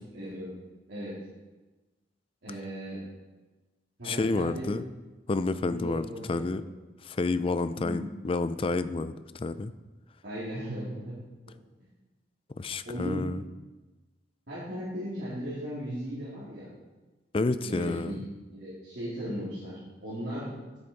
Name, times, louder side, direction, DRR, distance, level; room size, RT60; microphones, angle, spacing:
voice 1, 0.1-0.5 0.9-1.2 2.4-3.0 4.0-4.7 5.6-6.6 7.7-8.1 10.2-11.1 12.8-13.2 14.5-16.7 17.6-18.2 18.5-20.8, equal, 75° right, -12 dB, 3.6 m, -37 dB
voice 2, 4.0-4.8 5.3-6.6 7.0-9.7 12.6-13.4 17.3-18.2, left 3 dB, 30° left, 13 dB, 0.4 m, -29 dB
10.5 x 7.7 x 4.7 m, 1.2 s
head